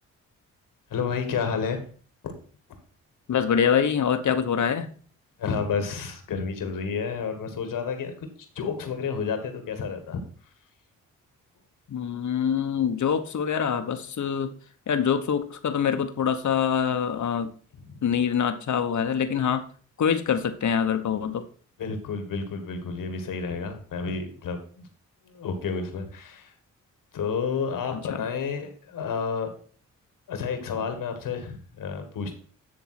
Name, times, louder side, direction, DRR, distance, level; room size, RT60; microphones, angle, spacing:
voice 1, 0.9-1.8 2.2-2.3 5.4-8.1 8.6-10.2 17.9-18.0 21.8-24.9 25.2-26.5 27.1-29.5 30.3-32.3, left 5 dB, 80° left, 7 dB, 1.8 m, -30 dB
voice 2, 3.3-4.9 11.9-14.5 14.9-17.5 18.0-19.6 20.0-21.4 28.1-28.2, left 7 dB, 60° left, 9 dB, 1.1 m, -25 dB
10.5 x 3.5 x 5.9 m, 0.43 s
cardioid pair, 65°, 32 cm